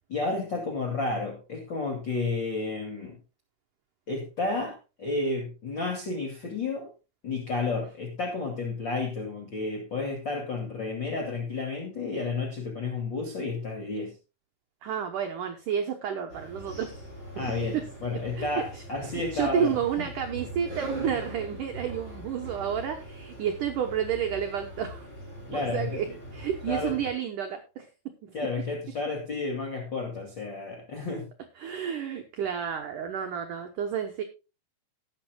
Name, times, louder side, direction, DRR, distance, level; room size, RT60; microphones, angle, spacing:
voice 1, 0.1-3.2 4.1-6.9 7.2-14.2 17.3-19.7 20.0-20.1 25.5-26.0 26.7-26.9 28.3-31.3, left 3 dB, 35° left, 2 dB, 2.0 m, -31 dB
voice 2, 14.8-16.9 17.6-17.8 18.4-18.5 18.7-18.8 19.3-25.1 25.5-26.1 26.3-27.9 28.2-28.4 31.6-34.2, right 8 dB, 80° right, 4 dB, 1.8 m, -30 dB
sound 1, 16.3-27.1, right 1 dB, 25° right, 7.3 m, -41 dB
19.0 x 8.8 x 2.3 m, 0.29 s
omnidirectional pair, 5.3 m